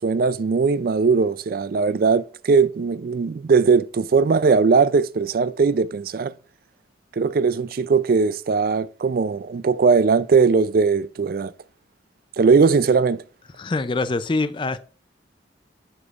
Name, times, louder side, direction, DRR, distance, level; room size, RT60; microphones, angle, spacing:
voice 1, 0.0-6.3 7.1-11.5 12.4-13.2, right 5 dB, 50° right, 0.3 m, -19 dB
voice 2, 13.6-14.8, left 3 dB, 25° left, 0.4 m, -24 dB
9.9 x 6.9 x 2.4 m
head